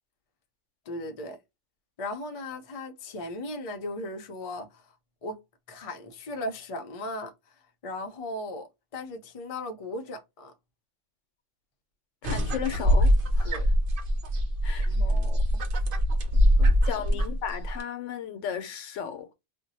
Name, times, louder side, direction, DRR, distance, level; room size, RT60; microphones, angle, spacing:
voice 1, 0.9-1.4 2.0-4.9 5.2-5.4 5.7-7.3 7.8-10.5 13.4-13.7 14.8-15.6 16.6-17.0, left 1 dB, 45° left, 0.5 m, -37 dB
voice 2, 12.2-13.6 14.6-14.9 16.8-19.3, left 8 dB, 90° left, 1.0 m, -35 dB
sound 1, 12.2-17.8, equal, 55° right, 0.8 m, -23 dB
2.6 x 2.1 x 4.0 m
omnidirectional pair, 1.2 m